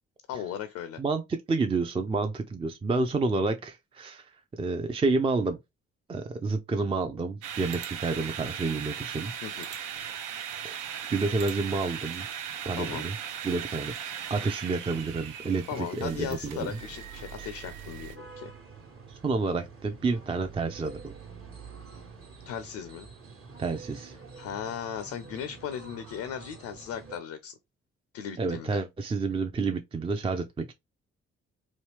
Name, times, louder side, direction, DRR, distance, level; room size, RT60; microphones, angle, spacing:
voice 1, 0.3-1.0 9.4-9.7 12.7-13.1 15.7-18.5 22.5-23.1 24.4-27.5 28.1-28.8, left 8 dB, 70° left, 0.5 m, -37 dB
voice 2, 1.0-5.6 6.1-9.3 10.6-12.3 12.7-13.2 13.4-16.8 17.4-17.5 19.1-21.1 23.6-24.2 28.4-30.7, right 3 dB, 20° right, 0.4 m, -29 dB
sound 1, 7.4-18.2, right 8 dB, 75° right, 0.5 m, -38 dB
sound 2, 16.7-27.2, right 5 dB, 50° right, 1.1 m, -47 dB
3.1 x 2.3 x 3.1 m
hypercardioid pair, 45°, 30 cm